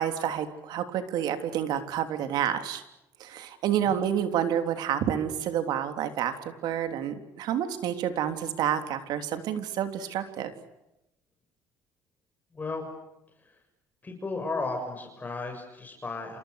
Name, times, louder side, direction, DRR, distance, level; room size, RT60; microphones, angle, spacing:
voice 1, 0.0-2.8 3.2-10.5, right 9 dB, 70° right, 7 dB, 3.5 m, -29 dB
voice 2, 12.5-12.8 13.4-13.6 14.0-16.4, left 3 dB, 25° left, 3 dB, 6.7 m, -34 dB
29.0 x 28.0 x 6.7 m, 0.90 s
supercardioid pair, 85°, 7 cm